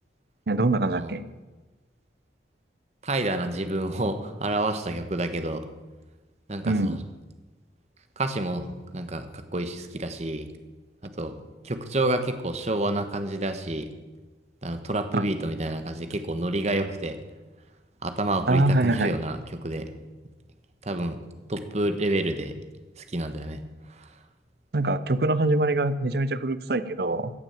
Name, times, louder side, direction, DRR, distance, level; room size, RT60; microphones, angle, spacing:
voice 1, 0.5-1.2 6.6-7.0 15.1-15.2 18.5-19.1 24.7-27.3, right 2 dB, 60° right, 14 dB, 0.7 m, -24 dB
voice 2, 3.0-5.6 6.5-7.0 8.2-10.5 11.2-11.3 11.6-13.9 14.6-17.2 18.0-19.8 20.8-21.2 21.5-22.6 23.0-23.6 23.9-24.1, right 1 dB, 35° right, 8 dB, 1.1 m, -29 dB
14.5 x 6.1 x 8.8 m, 1.2 s
head